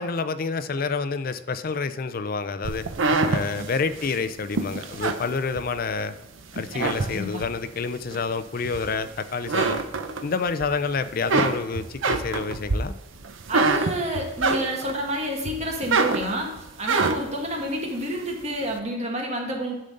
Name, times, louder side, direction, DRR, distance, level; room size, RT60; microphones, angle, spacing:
voice 1, 0.0-2.9 3.3-6.1 6.5-9.8 10.2-13.0, left 4 dB, 45° left, 12 dB, 0.4 m, -28 dB
sound 1, 2.6-6.1 6.5-7.6 8.1-9.1 9.4-10.7 11.0-15.0 15.4-17.4, right 3 dB, 75° right, 0.7 m, -25 dB
voice 2, 6.7-7.4 13.5-16.5 16.8-19.7, equal, 35° right, 0 dB, 1.5 m, -29 dB
10.0 x 3.9 x 6.5 m, 1.0 s
head